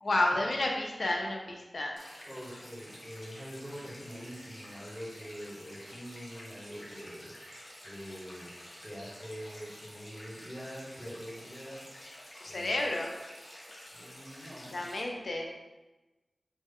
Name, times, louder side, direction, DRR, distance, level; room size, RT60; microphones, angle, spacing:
voice 1, 0.0-1.9 12.4-13.1 14.7-15.5, left 2 dB, 75° left, 1 dB, 0.4 m, -31 dB
sound 1, 2.0-15.0, equal, 60° left, 1.0 m, -50 dB
voice 2, 2.2-7.3 7.8-8.5 8.8-11.8 12.4-12.8 13.9-14.8, equal, 5° left, -10 dB, 1.2 m, -44 dB
3.1 x 2.2 x 3.4 m, 1.1 s
cardioid pair, 45°, 0 cm